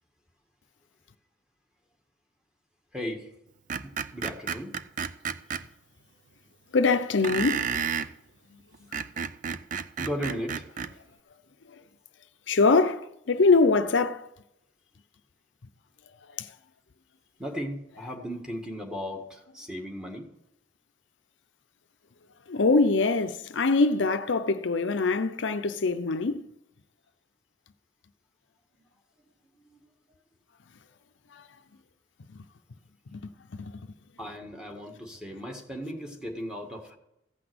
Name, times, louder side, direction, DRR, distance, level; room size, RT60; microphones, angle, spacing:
voice 1, 2.9-3.3 3.8-4.7 10.0-10.7 17.4-20.3 29.6-29.8 34.2-37.0, equal, 5° right, 1.7 m, -36 dB
Screech, 3.7-5.6 7.2-8.1 8.7-10.9, right 7 dB, 45° right, 0.5 m, -31 dB
voice 2, 6.7-7.7 12.5-14.3 16.4-16.5 22.5-26.5 31.3-31.4 33.1-33.3 33.6-33.7, left 3 dB, 75° left, 0.6 m, -23 dB
15.5 x 6.0 x 7.8 m
head